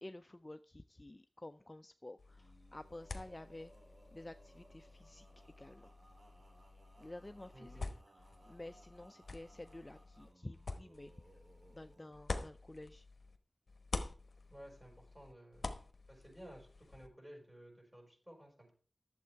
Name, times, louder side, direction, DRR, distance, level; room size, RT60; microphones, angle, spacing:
voice 1, 0.0-3.7 4.1-5.9 7.0-7.8 8.1-11.1 11.7-13.0, left 1 dB, 25° left, 10 dB, 0.4 m, -51 dB
sound 1, 2.2-13.4 13.7-17.1, left 3 dB, 65° left, 1.1 m, -48 dB
Male singing, 2.3-12.2, right 1 dB, 70° right, 2.2 m, -64 dB
voice 2, 7.5-7.9 14.5-15.8 16.1-18.7, equal, 15° right, 1 dB, 5.2 m, -55 dB
11.0 x 7.5 x 4.6 m, 0.41 s
wide cardioid pair, 70°, 0 cm